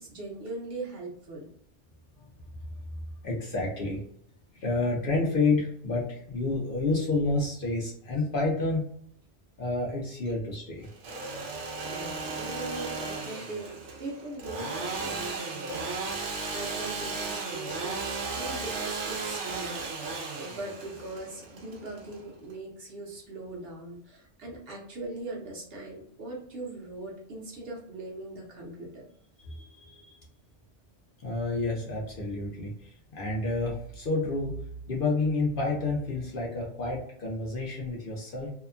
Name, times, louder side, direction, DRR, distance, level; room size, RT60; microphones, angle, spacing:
voice 1, 0.0-1.5 11.5-19.7 20.4-29.0, right 2 dB, 55° right, -2 dB, 1.0 m, -40 dB
voice 2, 3.2-4.0 4.5-8.8 9.6-10.9 29.4-30.2 31.2-34.6 34.9-38.5, left 3 dB, 55° left, -2 dB, 0.8 m, -29 dB
Engine / Sawing, 10.8-22.5, right 3 dB, 85° right, 1.0 m, -35 dB
2.8 x 2.2 x 2.4 m, 0.65 s
omnidirectional pair, 1.2 m